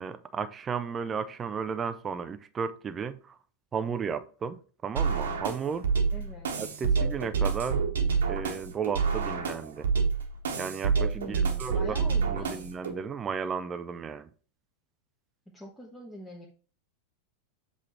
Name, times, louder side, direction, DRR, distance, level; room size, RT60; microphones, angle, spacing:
voice 1, 0.0-3.3 3.7-5.9 6.6-7.8 8.3-9.9 10.6-11.8 12.3-14.3, right 6 dB, 20° right, 0.4 m, -34 dB
sound 1, 5.0-12.9, right 5 dB, 65° right, 1.1 m, -28 dB
voice 2, 6.1-6.5 11.1-12.7 15.5-16.5, left 1 dB, 5° left, 1.1 m, -44 dB
7.6 x 3.5 x 4.3 m
figure-of-eight pair, 90°, 0 cm